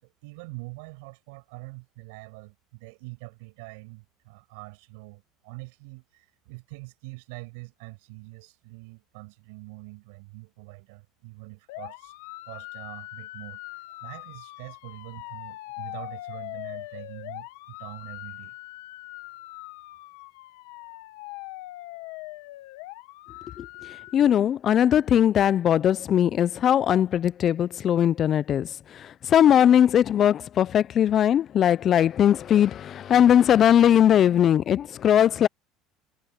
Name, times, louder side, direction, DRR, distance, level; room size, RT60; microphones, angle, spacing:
voice 1, 0.0-12.1 12.5-13.6 14.0-18.6, right 28 dB, 80° right, 5.9 m, -44 dB
sound 1, 11.7-24.1, left 20 dB, 80° left, 1.1 m, -41 dB
voice 2, 24.1-35.5, left 10 dB, 35° left, 0.4 m, -20 dB
supercardioid pair, 130°, 0 cm